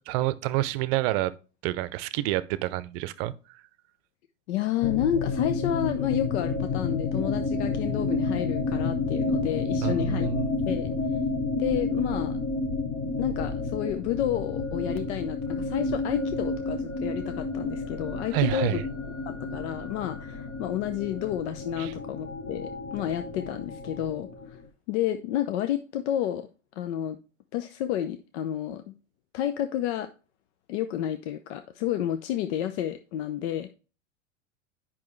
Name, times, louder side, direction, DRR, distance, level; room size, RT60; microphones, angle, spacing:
voice 1, 0.1-1.3 1.6-3.3 9.8-10.5 18.3-18.8 21.8-21.9, right 15 dB, 50° right, 0.7 m, -28 dB
voice 2, 4.5-10.3 10.7-10.9 11.5-12.4 13.2-18.8 19.3-24.6 24.9-26.5 26.8-27.2 27.5-28.9 29.3-30.1 30.7-33.7, left 11 dB, 65° left, 0.7 m, -30 dB
sound 1, 4.8-24.7, left 3 dB, 35° left, 1.2 m, -30 dB
8.5 x 5.8 x 3.2 m
hypercardioid pair, 100°, 37 cm